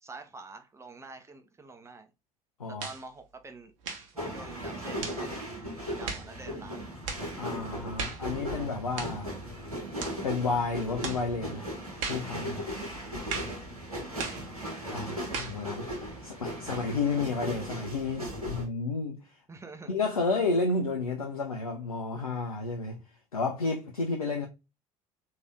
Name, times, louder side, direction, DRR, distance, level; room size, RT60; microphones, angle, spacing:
voice 1, 0.0-2.1 2.7-3.7 4.1-6.8 13.9-14.5 16.0-16.6 19.5-19.9, right 3 dB, 15° right, 0.7 m, -47 dB
sound 1, 2.8-3.0 3.8-4.1 5.0-5.2 6.1-6.3 7.1-7.3 8.0-8.3 9.0-9.2 10.0-10.2 11.0-11.3 12.0-12.3 13.3-13.6 14.2-14.5 15.3-15.6, right 5 dB, 65° right, 0.8 m, -36 dB
sound 2, 4.2-18.7, equal, 90° right, 1.0 m, -37 dB
voice 2, 7.4-9.3 10.2-11.7 12.1-12.7 14.9-15.9 16.2-19.2 19.9-23.0 23.3-24.5, left 3 dB, 85° left, 0.4 m, -31 dB
3.3 x 2.7 x 3.4 m
figure-of-eight pair, 60°, 18 cm